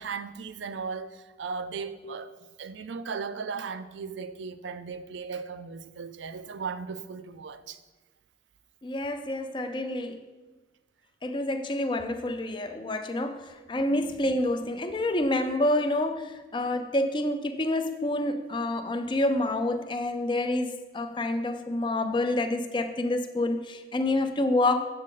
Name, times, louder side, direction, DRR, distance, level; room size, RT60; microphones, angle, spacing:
voice 1, 0.0-2.3 2.6-7.8 13.9-14.0, right 5 dB, 80° right, 0.4 m, -37 dB
voice 2, 8.8-10.2 11.2-24.8, left 1 dB, 25° left, 0.4 m, -28 dB
7.3 x 6.3 x 3.8 m
head